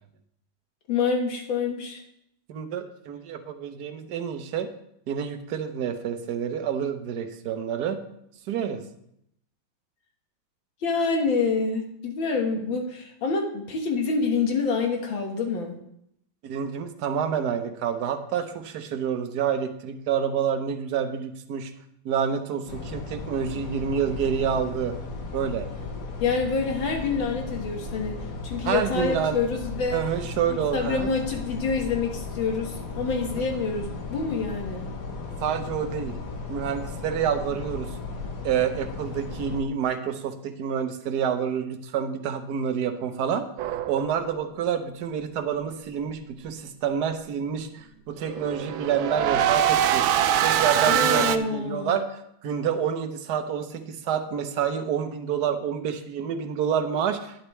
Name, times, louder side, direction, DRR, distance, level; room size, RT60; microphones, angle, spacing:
voice 1, 0.9-2.0 10.8-15.8 26.2-30.0 30.7-34.9 50.9-52.0, left 4 dB, 75° left, 3 dB, 2.2 m, -27 dB
voice 2, 2.5-4.7 5.1-8.0 8.5-8.8 16.4-21.7 22.0-25.0 25.3-25.7 28.6-29.4 29.9-31.1 35.4-36.2 36.5-37.9 38.4-43.5 43.9-50.1 50.4-52.0 52.4-57.5, right 8 dB, 60° right, 7 dB, 1.3 m, -28 dB
sound 1, 22.7-39.6, left 3 dB, 50° left, 1.3 m, -36 dB
sound 2, 43.6-44.5 48.2-51.4, right 10 dB, 85° right, 1.4 m, -23 dB
11.5 x 10.0 x 3.2 m, 0.75 s
omnidirectional pair, 2.2 m